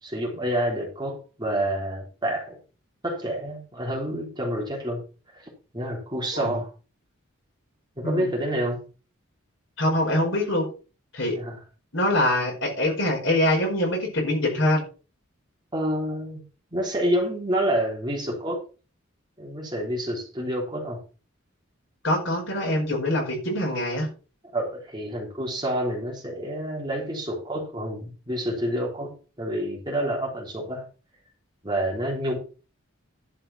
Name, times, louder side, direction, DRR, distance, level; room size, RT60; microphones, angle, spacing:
voice 1, 0.0-2.6 3.0-5.0 5.3-6.7 8.0-8.8 11.3-11.6 15.7-16.4 16.7-18.6 19.4-21.0 24.5-29.1 29.4-30.8 31.6-32.4, right 1 dB, 20° right, 3.5 m, -28 dB
voice 2, 9.8-10.7 11.1-11.4 11.9-14.8 22.0-24.1, left 1 dB, 60° left, 4.7 m, -24 dB
11.5 x 5.7 x 5.7 m
head